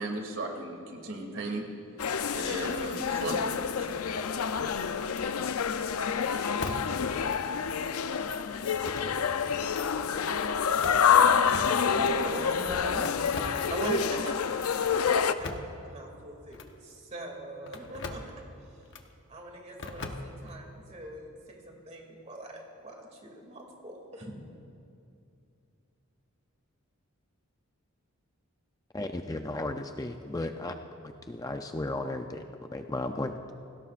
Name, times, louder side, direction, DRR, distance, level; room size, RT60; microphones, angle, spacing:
voice 1, 0.0-1.6 2.3-3.5 3.8-4.0, right 2 dB, 65° right, 1 dB, 2.3 m, -35 dB
sound 1, 2.0-15.3, left 6 dB, 85° left, 0.6 m, -27 dB
sound 2, 4.0-4.6 5.1-5.3 6.6-7.0 7.3-7.4 8.7-9.4 9.7-9.9 10.6-12.2 13.0-14.0 14.9-15.8 16.5-16.7 17.7-18.3 18.9-19.1 19.8-20.6, left 2 dB, 55° left, 1.1 m, -40 dB
voice 2, 11.9-13.3 13.7-18.2 18.6-18.8 19.3-24.3, right 1 dB, 30° right, 0 dB, 2.5 m, -41 dB
voice 3, 28.9-30.8 31.0-33.5, left 2 dB, 15° left, 6 dB, 0.4 m, -35 dB
30.0 x 17.0 x 2.5 m, 2.6 s
head